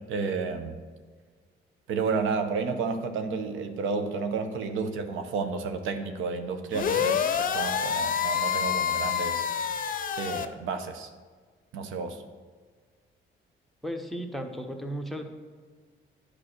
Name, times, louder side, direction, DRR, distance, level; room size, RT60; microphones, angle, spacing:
voice 1, 0.1-0.8 1.9-9.4 10.2-11.1 11.7-12.2, right 4 dB, 85° right, 7 dB, 0.9 m, -31 dB
sound 1, 6.7-10.5, left 7 dB, 45° left, 0.6 m, -27 dB
voice 2, 13.8-15.2, equal, ahead, 4 dB, 1.1 m, -35 dB
9.8 x 5.0 x 6.6 m, 1.5 s
cardioid pair, 90°, 20 cm